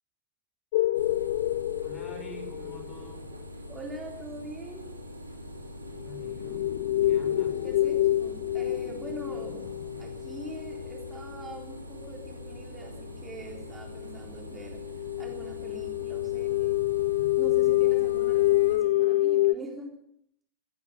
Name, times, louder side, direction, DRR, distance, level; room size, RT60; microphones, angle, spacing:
sound 1, 0.7-3.1 6.0-11.6 12.4-12.5 12.8-13.0 13.6-13.7 13.9-14.1 14.4-19.5, left 15 dB, 55° left, 0.6 m, -27 dB
sound 2, 0.9-18.8, equal, 85° right, 2.3 m, -43 dB
voice 1, 1.8-3.4 5.9-6.8 7.0-7.7, right 1 dB, 30° left, 3 dB, 5.1 m, -47 dB
voice 2, 3.7-4.9 7.6-9.7 10.0-14.8 15.2-16.7 17.4-19.9, right 1 dB, 15° right, 0 dB, 3.8 m, -43 dB
17.0 x 11.0 x 8.0 m, 0.71 s
figure-of-eight pair, 90°, 0 cm